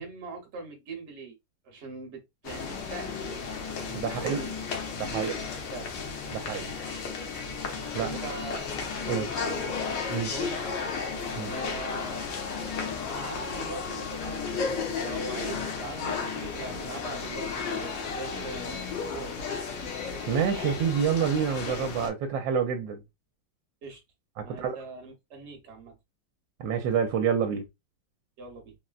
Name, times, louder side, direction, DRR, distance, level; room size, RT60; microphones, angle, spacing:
voice 1, 0.0-1.4 1.6-3.4 4.0-4.5 5.1-5.9 8.0-8.7 9.1-9.6 10.2-10.9 11.4-12.3 13.0-14.7 15.0-19.4 23.8-24.0 24.4-25.9 28.4-28.7, right 3 dB, 45° right, 1.1 m, -41 dB
sound 1, 2.4-22.1, left 5 dB, 75° left, 1.5 m, -34 dB
voice 2, 3.9-4.4 5.0-5.3 6.3-6.7 7.9-8.2 9.1-9.3 10.1-10.3 11.3-11.5 20.3-23.0 24.4-24.8 26.6-27.7, right 7 dB, 80° right, 1.3 m, -28 dB
3.8 x 2.1 x 2.4 m
omnidirectional pair, 2.0 m